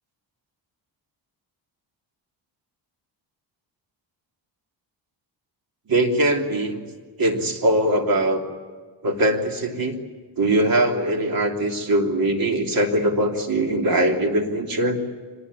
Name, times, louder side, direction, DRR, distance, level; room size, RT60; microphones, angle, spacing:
voice 1, 5.9-6.8 7.2-8.4 9.0-10.0 10.4-15.0, right 1 dB, 50° right, 4 dB, 3.3 m, -21 dB
25.0 x 20.5 x 9.6 m, 1.5 s
cardioid pair, 140°, 45 cm